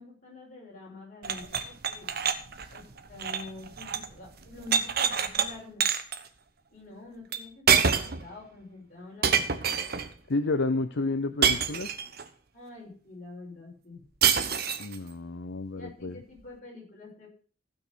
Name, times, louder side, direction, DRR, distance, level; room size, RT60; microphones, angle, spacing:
voice 1, 0.0-2.1 2.7-2.8 3.1-5.8 6.7-9.8 12.5-14.0 15.7-17.3, left 3 dB, 40° left, -2 dB, 6.7 m, -46 dB
sound 1, 1.2-4.1 4.4-5.5 5.8-6.2 7.3-7.4 7.7-8.2 9.2-10.1 11.4-12.2 14.2-15.0, right 7 dB, 55° right, 1.2 m, -26 dB
voice 2, 10.3-11.9 14.8-16.2, left 2 dB, 65° left, 9 dB, 0.7 m, -30 dB
15.5 x 6.3 x 6.2 m, 0.41 s
head